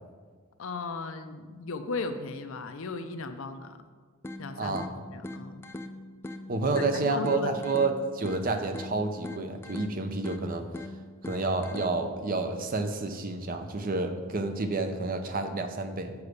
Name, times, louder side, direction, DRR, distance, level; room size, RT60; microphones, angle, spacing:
voice 1, 0.6-3.8 4.4-5.6 6.8-7.8, left 4 dB, 60° left, 8 dB, 0.6 m, -37 dB
sound 1, 4.2-12.2, left 1 dB, 10° left, 0.3 m, -42 dB
voice 2, 4.6-4.9 6.5-10.6 11.2-16.1, right 3 dB, 40° right, 6 dB, 0.6 m, -29 dB
7.1 x 4.8 x 6.5 m, 1.5 s
head